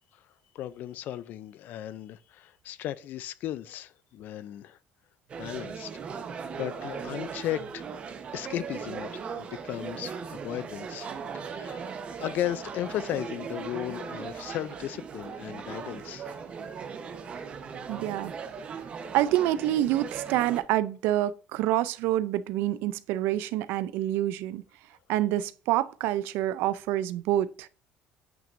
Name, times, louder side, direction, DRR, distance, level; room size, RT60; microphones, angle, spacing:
voice 1, 0.5-4.8 5.4-5.9 6.2-7.8 8.3-16.4, left 12 dB, 55° left, 0.5 m, -36 dB
sound 1, 5.3-20.6, right 6 dB, 30° right, 1.0 m, -38 dB
voice 2, 17.9-18.3 19.1-24.6 25.1-27.7, right 13 dB, 85° right, 0.5 m, -27 dB
9.0 x 5.9 x 2.6 m
cardioid pair, 155°, 4 cm